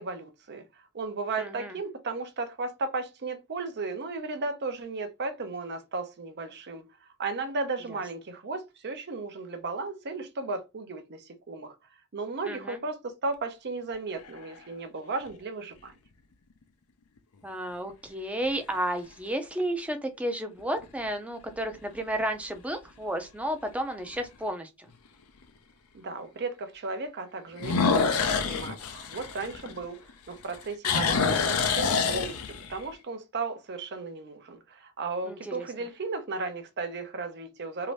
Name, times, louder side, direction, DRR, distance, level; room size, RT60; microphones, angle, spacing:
voice 1, 0.0-11.7 12.1-15.9 25.9-37.9, right 3 dB, 50° right, 0.6 m, -35 dB
voice 2, 1.4-1.8 12.5-12.8 17.4-24.9 35.3-35.6, right 1 dB, 5° right, 0.5 m, -32 dB
sound 1, 13.9-14.6 15.3-15.4 20.6-21.1 21.5-21.6 22.2-22.3 22.5-22.6 24.1-24.2 27.6-30.1 30.4-32.8, left 5 dB, 75° left, 0.6 m, -27 dB
2.8 x 2.6 x 3.1 m
head